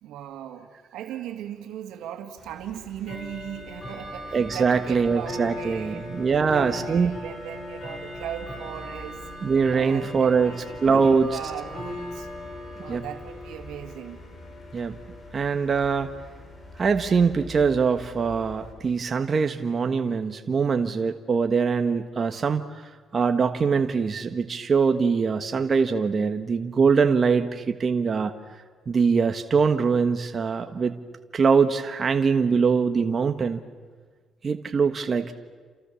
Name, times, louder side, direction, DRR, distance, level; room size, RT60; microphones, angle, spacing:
voice 1, 0.0-0.7 0.9-9.2 9.7-12.3 12.8-14.2, right 10 dB, 90° right, 6 dB, 2.5 m, -38 dB
Bell / Tick-tock, 2.4-18.7, left 1 dB, 35° left, 6.5 m, -39 dB
voice 2, 4.3-7.2 9.4-10.5 10.8-11.3 12.9-13.0 14.7-15.0 15.3-16.1 16.8-22.6 23.1-28.3 28.9-30.9 31.3-33.6 34.4-35.3, right 5 dB, 40° right, 7 dB, 1.4 m, -23 dB
30.0 x 27.5 x 7.1 m, 1.5 s
cardioid pair, 90°, 0 cm